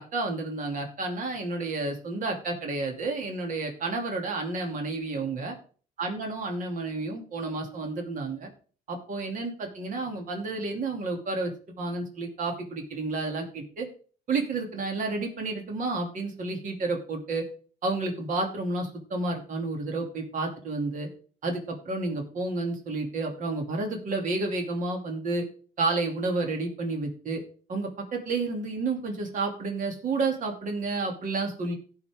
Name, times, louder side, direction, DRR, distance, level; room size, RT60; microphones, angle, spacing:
voice 1, 0.0-5.5 6.0-8.5 8.9-11.5 11.8-13.9 14.3-17.5 17.8-21.1 21.4-25.5 25.8-27.4 27.7-31.7, right 3 dB, 50° right, 2 dB, 2.7 m, -30 dB
17.0 x 5.8 x 3.6 m, 0.41 s
cardioid pair, 110°, 17 cm